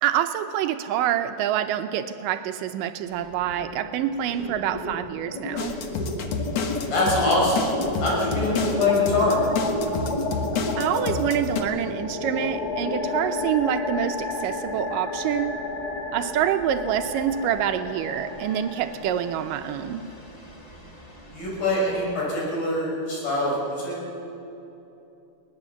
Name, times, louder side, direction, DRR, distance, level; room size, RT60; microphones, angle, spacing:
voice 1, 0.0-5.8 10.8-15.6 16.1-20.1, right 10 dB, 80° right, 9 dB, 2.2 m, -26 dB
sound 1, 3.1-3.9 4.1-22.2, left 2 dB, 25° left, 0.8 m, -32 dB
sound 2, 5.6-11.6, left 4 dB, 55° left, 2.2 m, -29 dB
voice 2, 6.9-7.7 8.0-9.4 21.3-24.0, left 2 dB, 75° left, -4 dB, 7.8 m, -24 dB
21.5 x 19.0 x 7.1 m, 2.9 s
omnidirectional pair, 4.1 m